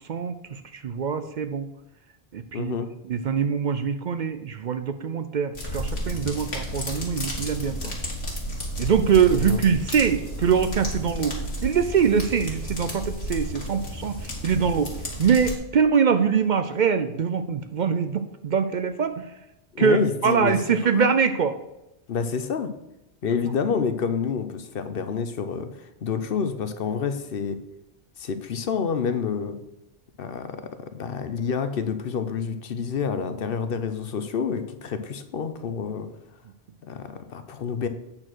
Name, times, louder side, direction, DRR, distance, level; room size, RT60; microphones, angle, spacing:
voice 1, 0.1-1.7 2.3-2.8 3.1-7.9 8.8-14.9 15.2-19.3 19.8-21.5, right 6 dB, 55° right, 10 dB, 0.6 m, -23 dB
voice 2, 2.5-2.9 9.3-9.6 19.7-20.5 20.9-21.1 22.1-22.7 23.2-27.6 28.2-29.6 30.2-30.5 30.9-36.1 36.8-37.9, left 6 dB, 65° left, 9 dB, 0.9 m, -28 dB
sound 1, 5.5-15.6, equal, 85° left, 2.3 m, -32 dB
8.7 x 4.5 x 6.1 m, 0.91 s
omnidirectional pair, 1.0 m